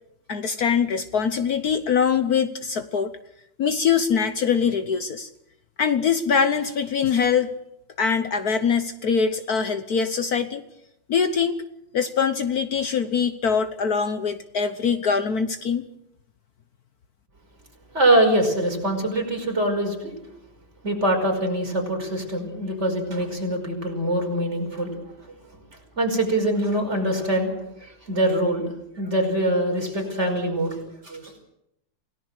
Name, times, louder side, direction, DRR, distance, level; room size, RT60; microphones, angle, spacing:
voice 1, 0.3-3.1 3.6-5.3 5.8-7.5 8.0-10.6 11.1-11.6 11.9-15.9, left 6 dB, 60° left, 9 dB, 1.5 m, -23 dB
voice 2, 17.9-20.1 20.8-25.0 26.0-28.7 29.0-30.8 31.0-31.3, right 1 dB, 35° right, 2 dB, 5.8 m, -23 dB
28.5 x 18.0 x 6.6 m, 0.80 s
omnidirectional pair, 2.0 m